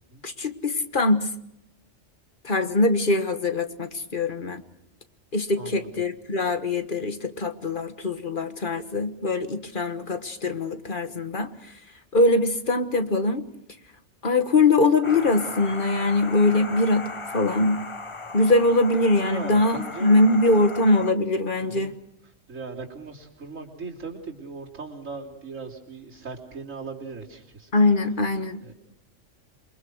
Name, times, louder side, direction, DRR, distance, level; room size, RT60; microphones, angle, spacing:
voice 1, 0.2-1.3 2.4-4.6 5.3-11.5 12.1-13.5 14.2-17.1 17.3-17.8 18.3-21.9 27.7-28.6, left 2 dB, 40° left, 9 dB, 1.6 m, -22 dB
voice 2, 5.6-5.9 19.2-20.4 21.6-21.9 22.5-27.7 28.6-28.7, right 4 dB, 80° right, -4 dB, 3.6 m, -38 dB
sound 1, 15.0-21.1, left 3 dB, 25° left, 1.0 m, -37 dB
28.0 x 22.5 x 6.4 m, 0.80 s
omnidirectional pair, 1.3 m